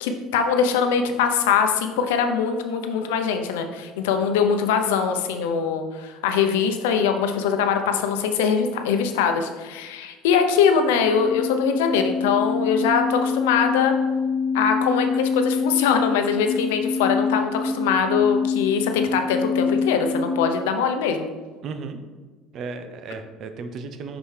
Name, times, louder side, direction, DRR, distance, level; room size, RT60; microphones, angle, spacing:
voice 1, 0.0-14.0 14.5-21.3, left 6 dB, 90° left, 6 dB, 0.7 m, -22 dB
sound 1, 10.9-20.5, left 5 dB, 10° right, 1.5 m, -25 dB
voice 2, 21.6-22.0 22.5-24.2, right 4 dB, 50° right, 8 dB, 0.7 m, -34 dB
6.0 x 5.5 x 3.3 m, 1.3 s
supercardioid pair, 95°, 0 cm